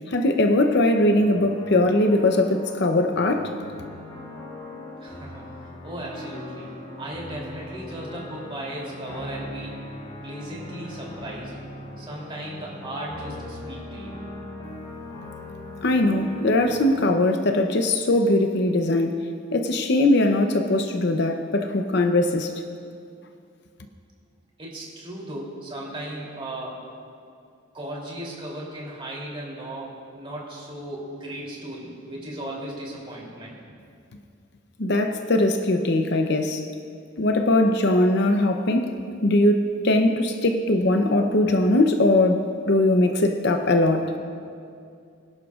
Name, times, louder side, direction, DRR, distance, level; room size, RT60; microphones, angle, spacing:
voice 1, 0.1-3.5 15.8-19.2 19.5-22.5 34.8-36.7 37.2-44.1, left 1 dB, 55° left, 6 dB, 0.7 m, -21 dB
sound 1, 1.1-17.1, left 1 dB, 25° left, 3.6 m, -39 dB
voice 2, 5.0-5.5 5.8-6.7 7.0-9.8 10.2-11.6 12.0-14.2 24.6-26.8 27.7-33.6, right 1 dB, 25° right, -4 dB, 3.0 m, -36 dB
24.5 x 11.0 x 2.4 m, 2.4 s
head